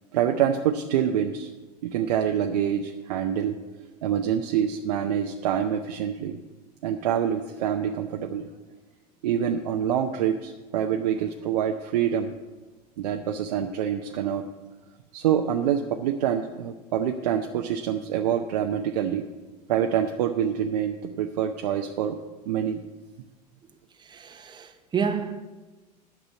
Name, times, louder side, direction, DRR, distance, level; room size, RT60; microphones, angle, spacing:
voice 1, 0.1-1.5 1.8-3.6 4.0-6.4 6.8-8.5 9.2-12.3 13.0-14.4 15.1-19.2 19.7-22.2 22.5-22.8, right 9 dB, 75° right, 0.6 m, -26 dB
voice 2, 24.1-25.4, right 6 dB, 20° right, 0.8 m, -29 dB
9.0 x 6.1 x 7.8 m
hypercardioid pair, 80°, 21 cm